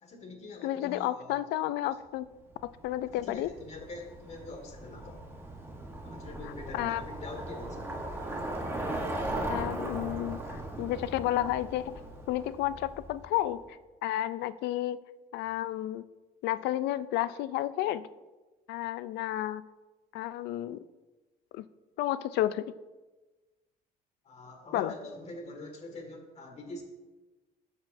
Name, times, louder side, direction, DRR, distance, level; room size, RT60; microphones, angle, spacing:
voice 1, 0.0-1.4 3.2-5.2 6.0-7.9 24.2-26.8, left 2 dB, 40° left, 3 dB, 1.9 m, -44 dB
voice 2, 0.6-2.3 2.8-3.5 6.7-7.0 9.5-12.0 12.3-15.0 15.3-16.0 16.4-18.1 18.7-19.6 20.1-20.8 21.5-21.7 22.0-22.7 24.7-24.9, left 13 dB, 85° left, 16 dB, 0.4 m, -31 dB
Bicycle, 2.5-13.4, right 1 dB, 15° right, 1.1 m, -38 dB
12.5 x 6.8 x 2.6 m, 1.2 s
cardioid pair, 110°, 17 cm